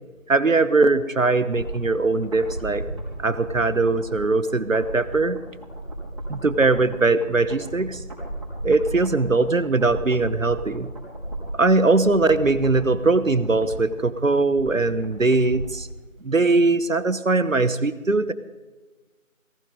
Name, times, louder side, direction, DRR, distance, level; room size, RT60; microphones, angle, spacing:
voice 1, 0.3-2.8 3.2-5.4 6.3-8.0 8.6-10.9 11.5-15.9 16.2-18.3, right 3 dB, 70° right, 14 dB, 1.2 m, -21 dB
sound 1, 1.4-15.9 16.2-16.3, right 1 dB, 20° right, 4.1 m, -36 dB
18.5 x 17.0 x 3.8 m, 1.2 s
figure-of-eight pair, 175°, 40 cm